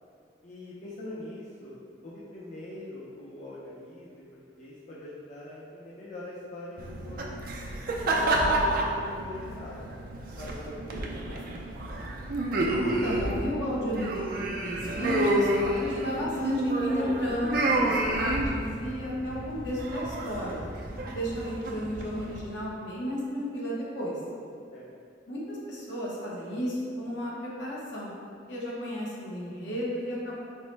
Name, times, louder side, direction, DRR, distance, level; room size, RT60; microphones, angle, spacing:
voice 1, 0.4-1.8 2.0-4.2 4.6-7.3 8.0-9.8 10.4-11.4 24.7-24.9, left 1 dB, 45° left, -8 dB, 0.4 m, -42 dB
sound 1, 6.8-22.4, right 1 dB, 50° right, 0.4 m, -30 dB
voice 2, 12.8-20.6 21.1-24.2 25.3-28.1 28.5-30.4, equal, 70° left, -5 dB, 0.8 m, -32 dB
4.4 x 2.0 x 3.2 m, 2.3 s
head